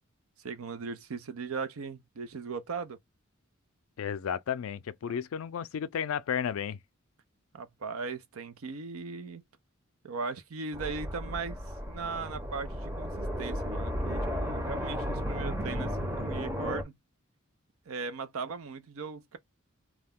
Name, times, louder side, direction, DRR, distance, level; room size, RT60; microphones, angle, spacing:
voice 1, 0.4-3.0 7.5-9.4 10.0-11.6 11.9-16.9 17.9-19.4, right 5 dB, 85° right, 0.5 m, -38 dB
voice 2, 4.0-6.8, left 8 dB, 80° left, 0.4 m, -33 dB
sound 1, 10.7-16.8, equal, 10° right, 0.6 m, -34 dB
2.3 x 2.1 x 3.5 m
head